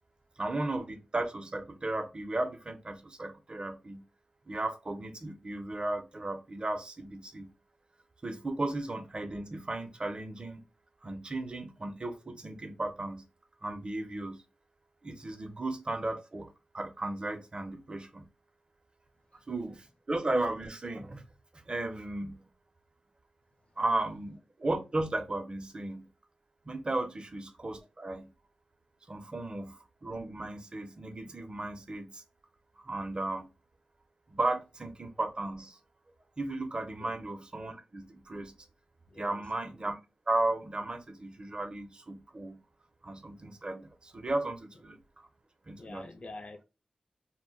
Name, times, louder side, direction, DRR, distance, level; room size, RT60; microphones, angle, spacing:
voice 1, 0.4-4.1 4.5-7.5 8.2-10.6 11.0-13.3 13.6-14.4 15.0-18.3 19.5-21.2 21.5-22.5 23.8-26.1 26.7-28.3 29.1-32.2 32.8-33.5 34.3-35.8 36.4-38.5 39.2-40.0 40.3-42.6 43.0-45.0 45.7-46.1, right 2 dB, 40° right, 0.5 m, -35 dB
voice 2, 39.1-39.4 45.8-46.6, left 2 dB, 50° left, 0.5 m, -46 dB
2.2 x 2.1 x 3.6 m
cardioid pair, 40°, 2 cm